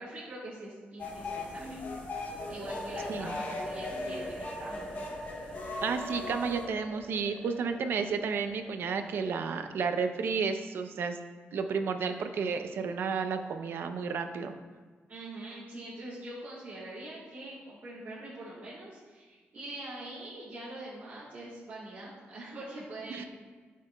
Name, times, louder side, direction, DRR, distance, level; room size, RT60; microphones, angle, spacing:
voice 1, 0.0-1.8 2.5-4.9 15.1-23.3, right 1 dB, 45° right, -8 dB, 2.5 m, -43 dB
sound 1, 1.0-6.6, left 2 dB, 55° left, 2.3 m, -39 dB
sound 2, 2.3-10.0, equal, 5° left, 1.1 m, -44 dB
voice 2, 5.8-11.2 11.5-14.5 23.1-23.3, right 5 dB, 65° right, 7 dB, 0.6 m, -32 dB
13.5 x 7.5 x 2.3 m, 1.4 s
wide cardioid pair, 180°, 4 cm